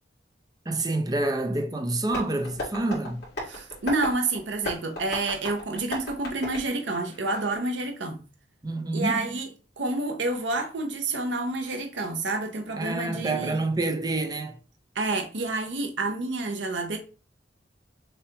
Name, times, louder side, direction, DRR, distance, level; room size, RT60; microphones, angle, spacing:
voice 1, 0.7-3.2 8.6-9.3 12.7-14.6, right 2 dB, 20° right, 0.5 m, -28 dB
Tap, 2.1-7.6, left 1 dB, 55° left, 2.3 m, -37 dB
voice 2, 3.5-8.2 8.9-9.5 9.8-13.6 15.0-17.0, right 2 dB, 70° right, 0.6 m, -29 dB
6.7 x 2.3 x 2.8 m
head